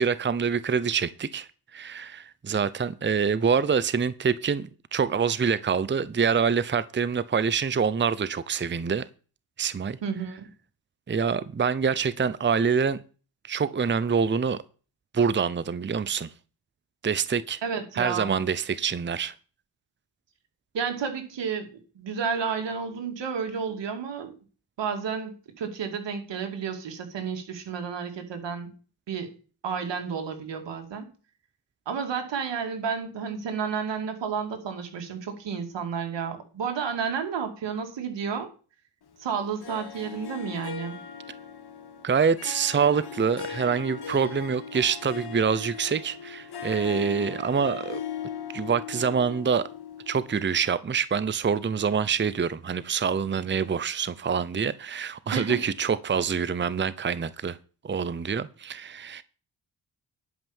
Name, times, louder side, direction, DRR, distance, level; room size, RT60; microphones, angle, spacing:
voice 1, 0.0-9.1 9.6-10.0 11.1-13.0 13.5-14.6 15.1-16.3 17.0-17.6 18.0-19.3 42.0-48.0 48.5-49.7 50.1-57.6 57.8-59.2, right 6 dB, 25° right, 0.7 m, -26 dB
voice 2, 10.0-10.5 17.6-18.4 20.7-24.4 24.8-28.7 29.1-29.3 29.6-31.1 31.9-38.5 39.2-41.0 55.3-55.6, right 6 dB, 85° right, 2.5 m, -31 dB
Harp, 39.6-50.7, left 7 dB, 65° left, 2.2 m, -39 dB
11.0 x 5.6 x 7.2 m
cardioid pair, 60°, 42 cm